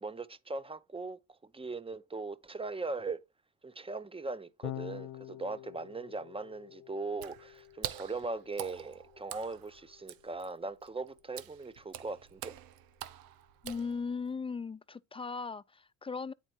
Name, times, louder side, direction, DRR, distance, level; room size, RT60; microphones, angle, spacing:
voice 1, 0.0-3.2 3.6-12.6, right 3 dB, 15° right, 0.7 m, -39 dB
Electric guitar / Bass guitar, 4.6-11.0, left 14 dB, 80° left, 0.6 m, -48 dB
Water / Splash splatter, 7.1-14.3, right 12 dB, 80° right, 0.9 m, -46 dB
voice 2, 13.6-16.3, left 5 dB, 15° left, 0.3 m, -38 dB
8.9 x 4.4 x 4.4 m
supercardioid pair, 75°, 35 cm